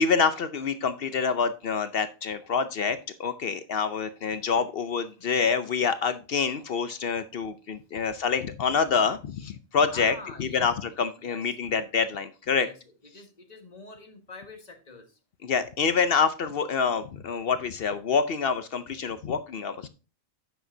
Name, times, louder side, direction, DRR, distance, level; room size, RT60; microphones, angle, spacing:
voice 1, 0.0-12.7 15.4-19.9, left 5 dB, 55° left, 11 dB, 0.7 m, -27 dB
voice 2, 9.9-11.8 12.6-12.8 13.1-15.1, left 3 dB, 30° left, 4 dB, 1.6 m, -46 dB
10.0 x 7.1 x 2.6 m, 0.33 s
omnidirectional pair, 1.4 m